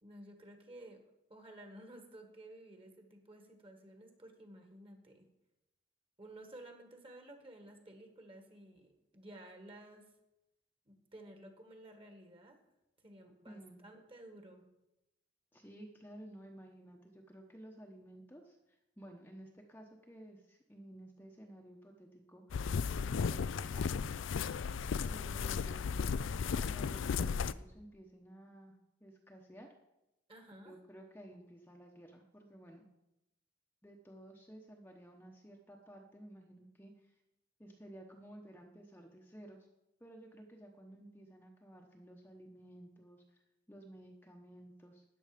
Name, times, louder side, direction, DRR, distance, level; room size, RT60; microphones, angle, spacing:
voice 1, 0.0-1.0 1.3-5.3 6.2-10.1 10.9-12.6 13.0-14.7 30.3-30.8, right 1 dB, 30° right, 5 dB, 1.8 m, -54 dB
voice 2, 13.5-13.8 15.5-22.6 23.0-23.9 25.0-26.2 26.5-28.8 29.0-29.7 30.6-32.9 33.8-37.1 37.6-39.7 40.0-43.4 43.7-45.0, right 1 dB, 10° left, 1 dB, 0.9 m, -54 dB
sound 1, 22.5-27.5, left 6 dB, 85° left, 0.4 m, -35 dB
13.5 x 9.4 x 5.1 m, 0.92 s
head